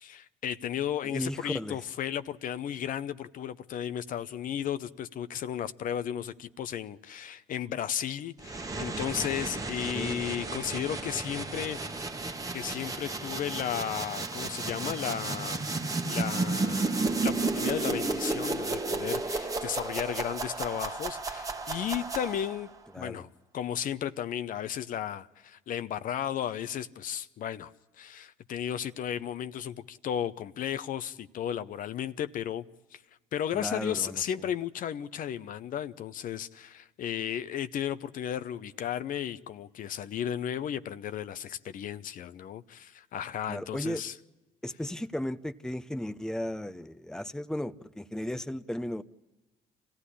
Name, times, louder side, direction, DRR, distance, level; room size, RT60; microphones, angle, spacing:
voice 1, 0.0-12.0 12.5-15.7 16.0-22.7 22.9-23.3 23.5-27.7 28.0-32.6 32.9-33.0 33.3-44.1, left 10 dB, 60° left, 0.8 m, -34 dB
voice 2, 1.0-1.8 9.9-10.2 22.9-23.2 33.5-34.5 43.5-44.0 44.6-49.0, left 1 dB, 5° left, 0.8 m, -35 dB
sound 1, 8.4-22.7, right 3 dB, 20° right, 1.4 m, -33 dB
25.0 x 16.0 x 10.0 m
supercardioid pair, 75°, 16 cm